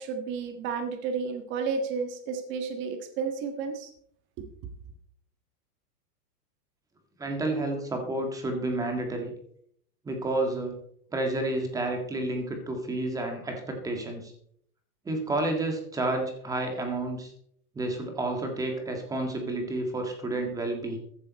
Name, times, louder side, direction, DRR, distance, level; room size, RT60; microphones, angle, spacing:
voice 1, 0.0-3.9, right 5 dB, 25° right, 6 dB, 1.6 m, -32 dB
voice 2, 7.2-9.3 10.0-10.8 11.1-14.3 15.0-17.3 17.7-21.0, right 2 dB, 5° right, 4 dB, 1.7 m, -30 dB
14.5 x 11.0 x 4.2 m, 0.66 s
supercardioid pair, 170°, 46 cm